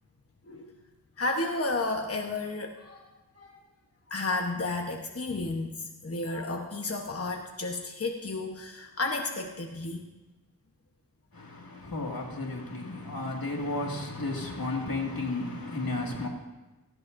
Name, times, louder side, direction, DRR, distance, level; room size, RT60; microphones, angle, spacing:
voice 1, 1.2-3.1 3.4-3.6 4.1-10.0, left 2 dB, 40° left, 1.0 m, -32 dB
voice 2, 11.3-16.3, left 2 dB, 70° left, 2.2 m, -33 dB
18.5 x 15.5 x 2.6 m
wide cardioid pair, 65°, 36 cm